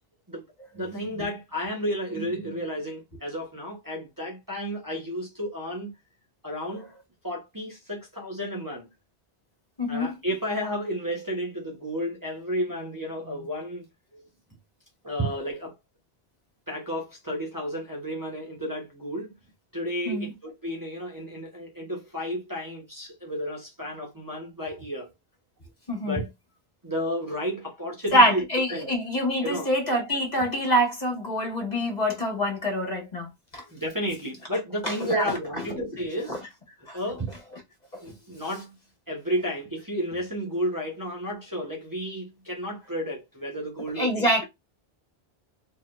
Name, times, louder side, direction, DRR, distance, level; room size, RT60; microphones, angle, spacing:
voice 1, 0.7-5.9 6.4-6.9 7.2-8.9 9.9-13.9 14.1-14.3 15.0-15.7 16.7-19.3 19.7-25.1 26.0-26.3 26.8-28.9 29.4-29.7 33.7-36.4 36.9-37.4 37.9-38.7 39.1-44.4, equal, 20° right, 1.2 m, -32 dB
voice 2, 9.8-10.1 20.1-20.3 25.9-26.2 28.1-33.6 35.1-35.7 36.3-36.4 36.9-37.0 44.0-44.4, equal, 40° left, 1.9 m, -25 dB
4.3 x 4.1 x 2.6 m
omnidirectional pair, 1.1 m